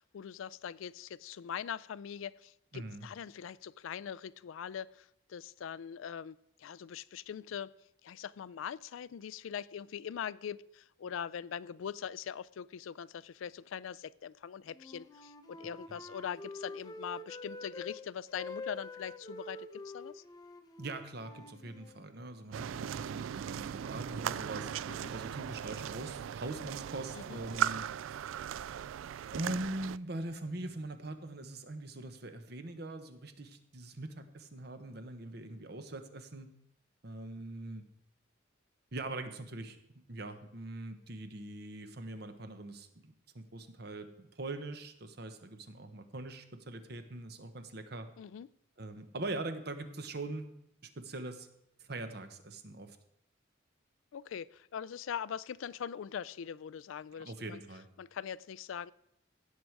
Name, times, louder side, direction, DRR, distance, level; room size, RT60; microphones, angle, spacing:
voice 1, 0.0-7.7 8.0-20.2 24.9-25.1 27.2-27.4 48.2-48.5 54.1-57.6 58.0-58.9, left 8 dB, 80° left, 21 dB, 0.3 m, -42 dB
voice 2, 2.7-3.1 20.8-24.7 25.1-27.9 29.3-36.5 37.0-37.8 38.9-39.8 40.1-48.1 48.8-50.5 50.8-51.5 51.8-53.0 57.2-57.9, right 2 dB, 55° right, 8 dB, 1.1 m, -42 dB
Wind instrument woodwind instrument, 14.7-18.0 18.3-22.1, left 2 dB, 20° left, 0.6 m, -46 dB
sound 1, 22.5-30.0, right 9 dB, 80° right, 0.3 m, -38 dB
16.0 x 6.5 x 4.7 m, 0.79 s
head